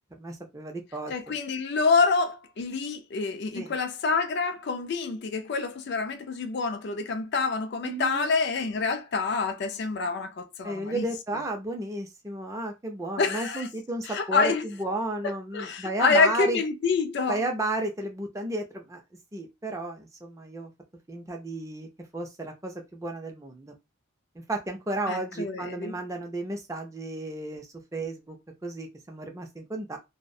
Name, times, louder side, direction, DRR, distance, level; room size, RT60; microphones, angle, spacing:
voice 1, 0.2-1.4 3.6-3.7 7.8-8.3 10.6-16.6 17.3-19.0 19.3-20.7 21.1-21.9 22.1-23.7 24.5-28.4 28.6-30.0, right 2 dB, 15° right, 0.4 m, -33 dB
voice 2, 1.1-11.1 13.2-13.7 14.0-14.7 15.2-17.4 25.1-26.0, left 4 dB, 50° left, 0.3 m, -27 dB
2.3 x 2.0 x 2.6 m
head